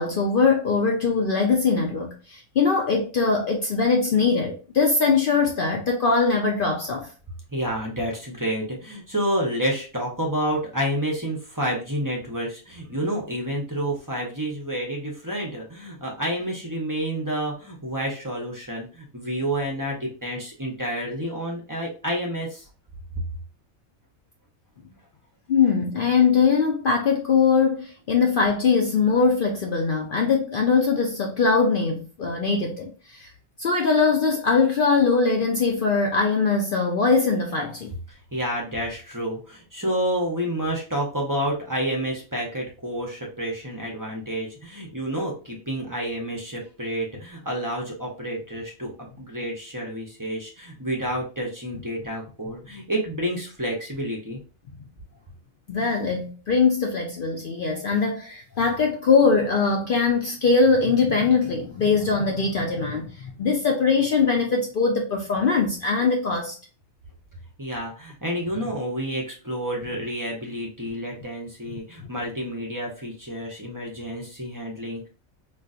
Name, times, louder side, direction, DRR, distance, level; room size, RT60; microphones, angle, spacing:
voice 1, 0.0-7.1 25.5-33.3 33.6-37.9 55.7-66.5, left 4 dB, 60° left, 0.6 m, -21 dB
voice 2, 7.5-22.7 38.1-48.9 49.2-54.4 67.6-75.1, equal, 20° right, 0.6 m, -29 dB
3.9 x 2.4 x 2.4 m
omnidirectional pair, 1.4 m